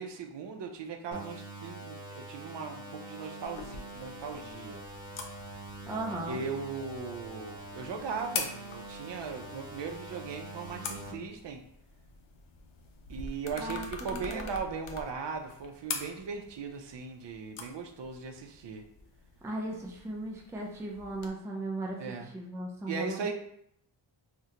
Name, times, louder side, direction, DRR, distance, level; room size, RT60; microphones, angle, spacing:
voice 1, 0.0-4.8 6.3-11.6 13.1-18.8 22.0-22.3 22.9-23.3, right 5 dB, 65° right, 4 dB, 0.5 m, -38 dB
sound 1, 1.1-11.1, right 1 dB, 40° left, 0.9 m, -45 dB
sound 2, 3.4-21.3, left 4 dB, 85° left, 0.6 m, -45 dB
voice 2, 5.9-6.4 13.6-14.5 19.4-23.3, right 1 dB, 5° right, -1 dB, 0.3 m, -37 dB
3.7 x 2.1 x 2.8 m, 0.73 s
wide cardioid pair, 145°, 46 cm